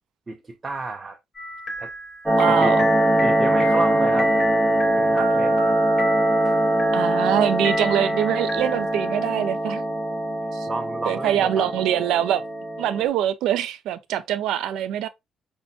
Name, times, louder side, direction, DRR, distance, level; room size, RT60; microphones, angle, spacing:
voice 1, 0.3-1.2 1.8-1.9 2.5-2.7 3.2-4.4 4.9-5.8 6.4-6.6 10.7-11.7, right 3 dB, 30° right, 0.5 m, -31 dB
sound 1, 1.3-9.3, left 1 dB, 30° left, 2.6 m, -33 dB
sound 2, 2.3-13.1, right 1 dB, 15° right, 1.3 m, -22 dB
voice 2, 2.4-2.9 6.9-9.8 10.5-10.7 11.1-12.4 12.8-15.1, right 11 dB, 90° right, 0.4 m, -24 dB
5.6 x 2.1 x 2.7 m
cardioid pair, 90°, 0 cm